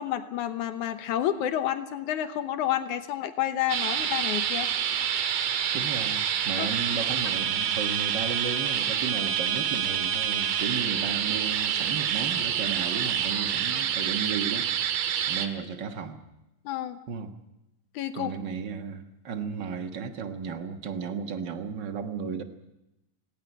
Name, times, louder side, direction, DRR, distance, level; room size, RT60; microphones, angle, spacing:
voice 1, 0.0-4.7 6.6-6.7 16.7-17.0 17.9-18.3, left 11 dB, 70° left, 10 dB, 2.3 m, -29 dB
sound 1, 3.7-15.5, right 9 dB, 75° right, 3.0 m, -27 dB
voice 2, 5.7-16.2 17.1-17.3 18.1-22.4, right 6 dB, 50° right, 8 dB, 1.5 m, -34 dB
18.0 x 17.5 x 9.9 m, 0.94 s
omnidirectional pair, 3.8 m